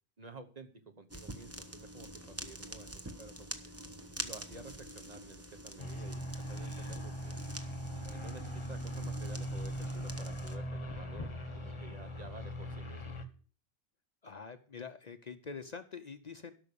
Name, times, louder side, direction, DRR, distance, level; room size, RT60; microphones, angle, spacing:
voice 1, 0.2-0.7 0.9-3.7 4.2-7.3 7.9-11.3 11.5-13.2, right 3 dB, 40° right, 7 dB, 1.2 m, -51 dB
sound 1, 1.1-10.6, right 1 dB, 15° right, 0.9 m, -46 dB
sound 2, 5.8-13.3, equal, 30° left, 1.1 m, -40 dB
voice 2, 14.2-16.5, left 5 dB, 45° left, 10 dB, 0.7 m, -45 dB
12.5 x 6.0 x 6.8 m, 0.40 s
omnidirectional pair, 1.1 m